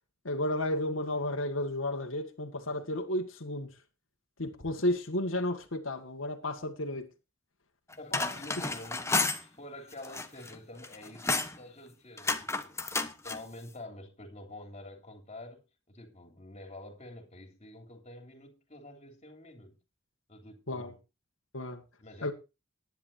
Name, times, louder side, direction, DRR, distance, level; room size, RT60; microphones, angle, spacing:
voice 1, 0.2-3.7 4.4-7.1 20.7-20.9 21.5-21.8 22.2-22.3, left 1 dB, 85° left, 1.9 m, -32 dB
sound 1, 7.9-9.4 9.9-10.6 10.8-11.6 12.2-13.4, left 3 dB, 15° left, 1.2 m, -31 dB
voice 2, 8.0-19.7 20.3-21.0 22.0-22.3, left 1 dB, 35° left, 3.3 m, -48 dB
19.0 x 10.5 x 2.8 m
head